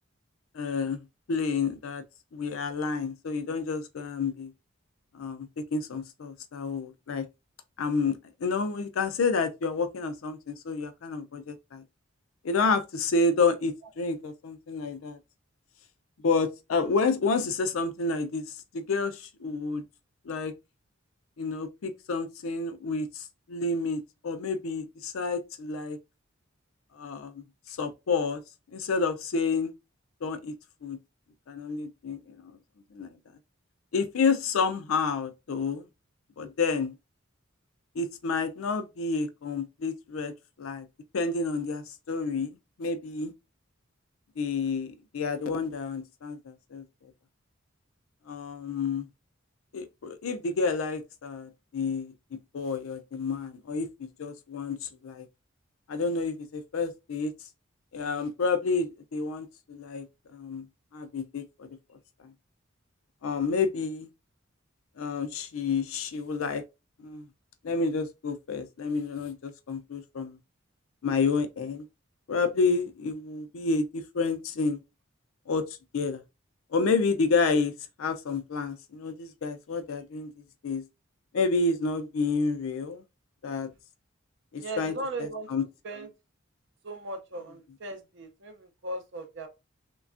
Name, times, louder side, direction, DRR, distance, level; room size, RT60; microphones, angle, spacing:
voice 1, 0.5-2.0 2.3-4.5 5.1-7.3 7.8-8.1 8.4-11.8 12.4-15.2 16.2-18.4 18.7-19.8 20.3-20.5 21.4-26.0 27.0-27.4 27.7-28.4 28.7-29.7 30.2-30.5 30.8-31.0 31.5-32.2 32.4-32.6 32.9-33.1 33.9-35.9 36.4-36.9 38.0-40.3 40.6-40.9 41.1-43.3 44.4-46.8 48.3-49.0 49.7-55.2 55.9-57.3 57.9-60.1 60.3-60.6 60.9-61.7 63.2-64.1 65.0-66.6 67.0-67.2 67.6-70.4 71.0-71.8 72.3-74.8 75.5-75.6 75.9-76.2 76.7-77.7 78.0-80.3 80.6-80.8 81.3-83.0 83.4-83.7 84.5-85.6, left 4 dB, 85° left, 0.4 m, -29 dB
voice 2, 84.6-85.5 85.8-86.1 86.8-89.5, right 2 dB, 60° right, 0.6 m, -37 dB
3.2 x 2.2 x 2.4 m
head